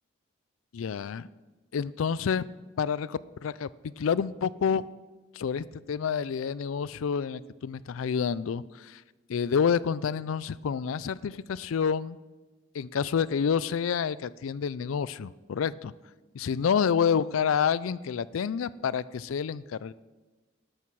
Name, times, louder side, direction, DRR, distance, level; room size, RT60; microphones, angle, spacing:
voice 1, 0.7-1.3 1.7-2.5 2.8-4.9 5.3-9.0 9.3-12.2 12.7-15.9 16.3-19.9, left 7 dB, 90° left, 19 dB, 0.4 m, -28 dB
12.0 x 11.5 x 4.7 m, 1.2 s
head